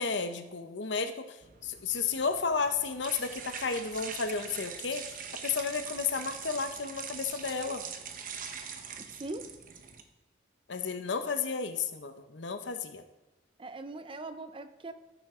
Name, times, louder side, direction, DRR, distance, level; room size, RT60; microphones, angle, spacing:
voice 1, 0.0-1.4 1.6-5.0 5.4-7.8 10.7-13.0, left 5 dB, 65° left, 9 dB, 0.8 m, -32 dB
sound 1, 1.4-10.0, right 7 dB, 45° right, 0.9 m, -43 dB
voice 2, 9.0-9.5 13.6-14.9, right 2 dB, 25° right, 10 dB, 0.5 m, -41 dB
15.0 x 8.0 x 3.7 m, 1.0 s
head